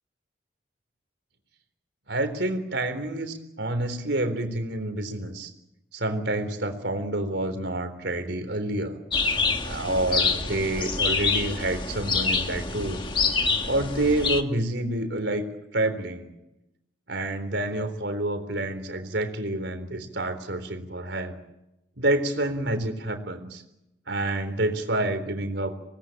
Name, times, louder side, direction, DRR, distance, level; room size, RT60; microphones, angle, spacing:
voice 1, 2.1-5.5 5.9-9.0 9.6-13.0 13.6-15.4 15.7-16.2 17.1-21.4 22.0-23.6 24.1-25.7, right 1 dB, 70° right, 8 dB, 3.8 m, -28 dB
sound 1, 9.1-14.4, left 4 dB, 25° left, 1.6 m, -26 dB
26.5 x 19.0 x 9.0 m, 0.91 s
head